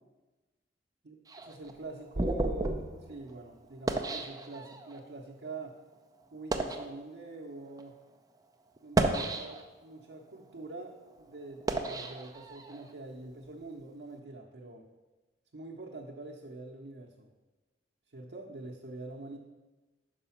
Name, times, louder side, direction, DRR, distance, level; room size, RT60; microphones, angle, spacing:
sound 1, 1.3-5.0 5.7-5.8 6.3-6.9 7.7-7.8 8.8-9.9 10.4-12.9, right 2 dB, 20° right, 0.4 m, -33 dB
voice 1, 1.5-5.7 6.3-8.0 8.8-14.9 15.5-17.3 18.1-19.4, right 2 dB, 80° right, -2 dB, 0.7 m, -45 dB
5.6 x 5.0 x 5.7 m, 1.2 s
head